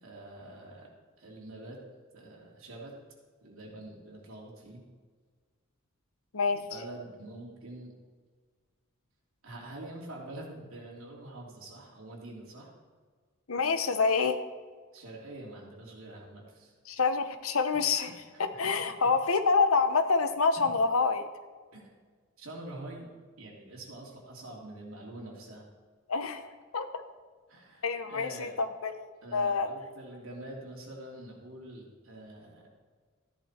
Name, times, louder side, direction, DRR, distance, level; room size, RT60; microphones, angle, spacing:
voice 1, 0.0-0.9 1.2-1.8 2.1-2.9 3.4-4.8 6.7-7.9 9.4-12.7 14.9-16.7 18.0-18.7 20.6-20.7 21.7-21.9 22.4-23.1 23.4-25.7 27.5-28.5 29.2-32.7, right 1 dB, 70° right, -2 dB, 3.1 m, -45 dB
voice 2, 13.5-14.4 16.9-18.1 18.4-21.3 26.1-26.5 26.7-26.9 27.8-29.7, left 4 dB, 80° left, 9 dB, 1.0 m, -27 dB
14.0 x 10.5 x 4.5 m, 1.5 s
head